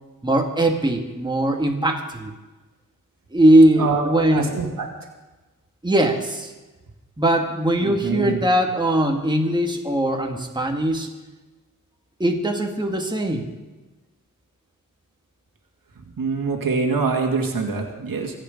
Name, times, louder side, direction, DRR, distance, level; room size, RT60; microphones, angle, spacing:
voice 1, 0.2-2.3 3.3-4.5 5.8-6.5 7.2-11.1 12.2-13.5, right 1 dB, 15° right, 2 dB, 1.9 m, -20 dB
voice 2, 3.8-4.9 7.8-8.4 16.2-18.3, right 4 dB, 85° right, 2 dB, 2.3 m, -24 dB
25.0 x 9.0 x 5.2 m, 1.2 s
wide cardioid pair, 95°, 34 cm